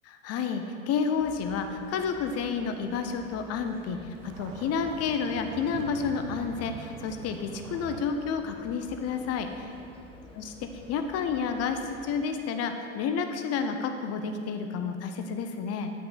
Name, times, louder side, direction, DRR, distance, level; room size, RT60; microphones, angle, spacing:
voice 1, 0.1-4.0 4.2-9.7 10.4-10.5 10.9-15.9, left 6 dB, 40° left, 6 dB, 0.6 m, -30 dB
sound 1, 1.2-12.3, left 2 dB, 15° left, 1.2 m, -50 dB
sound 2, 4.2-8.0, right 8 dB, 45° right, 0.6 m, -44 dB
9.4 x 5.5 x 3.8 m, 2.4 s
hypercardioid pair, 80°, 40 cm